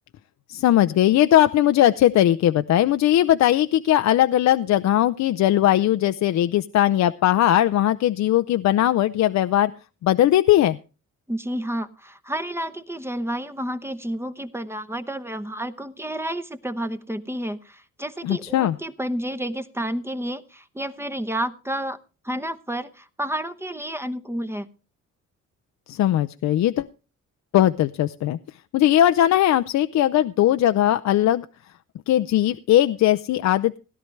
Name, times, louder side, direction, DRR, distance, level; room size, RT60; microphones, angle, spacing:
voice 1, 0.5-9.7 10.0-10.8 18.2-18.8 25.9-26.9 27.5-28.4 28.7-31.5 32.1-33.8, left 12 dB, 65° left, 10 dB, 0.6 m, -19 dB
voice 2, 11.3-22.0 22.2-24.7, right 1 dB, 10° right, 11 dB, 0.9 m, -30 dB
17.0 x 11.0 x 3.2 m, 0.33 s
cardioid pair, 90°, 30 cm